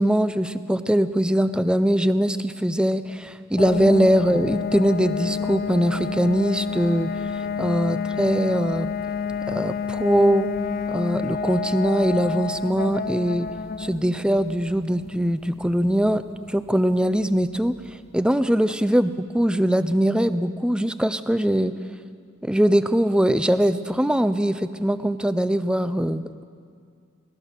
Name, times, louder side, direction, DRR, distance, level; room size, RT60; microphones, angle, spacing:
voice 1, 0.0-8.9 9.5-10.5 10.9-13.5 13.8-17.7 18.1-21.8 22.4-26.4, equal, 5° right, 12 dB, 0.5 m, -22 dB
sound 1, 3.6-18.2, left 5 dB, 50° left, 0.5 m, -30 dB
22.5 x 17.5 x 6.6 m, 2.3 s
head